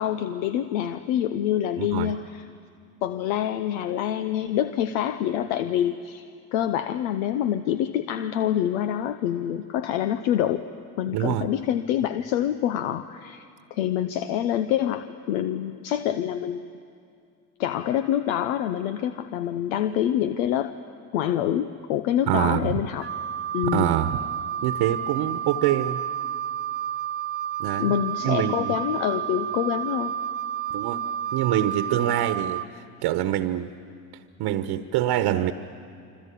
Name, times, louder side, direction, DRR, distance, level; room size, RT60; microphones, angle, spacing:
voice 1, 0.0-2.4 3.0-6.2 6.5-10.6 11.0-16.7 17.6-20.7 21.1-23.1 23.5-23.9 27.8-30.1, left 11 dB, 80° left, 11 dB, 0.9 m, -26 dB
voice 2, 1.8-2.1 11.1-11.5 22.3-22.7 23.7-24.2 24.6-26.0 27.6-27.9 28.2-28.7 30.7-31.0 31.3-33.7 34.4-35.5, right 12 dB, 65° right, 10 dB, 1.2 m, -25 dB
Wind instrument woodwind instrument, 23.0-32.7, right 9 dB, 25° right, 0.6 m, -30 dB
26.5 x 26.0 x 8.5 m, 2.4 s
hypercardioid pair, 60°, 41 cm